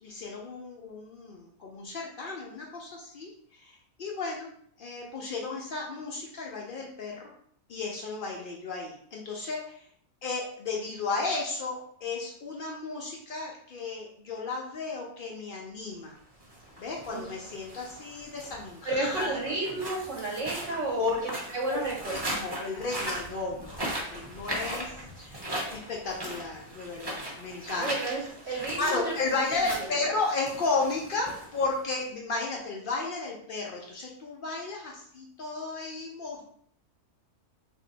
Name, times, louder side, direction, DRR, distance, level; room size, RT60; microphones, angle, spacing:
voice 1, 0.0-4.5 4.8-7.3 7.7-9.8 10.2-16.1 16.8-19.4 21.0-21.1 21.7-21.8 22.1-25.0 25.2-27.9 28.5-36.4, left 3 dB, 85° left, -1 dB, 0.4 m, -34 dB
sound 1, 16.3-32.0, right 1 dB, 25° right, 0.5 m, -39 dB
voice 2, 18.8-21.0 21.5-22.4 27.8-29.9, right 2 dB, 60° right, -4 dB, 0.9 m, -32 dB
2.7 x 2.6 x 3.9 m, 0.64 s
omnidirectional pair, 1.6 m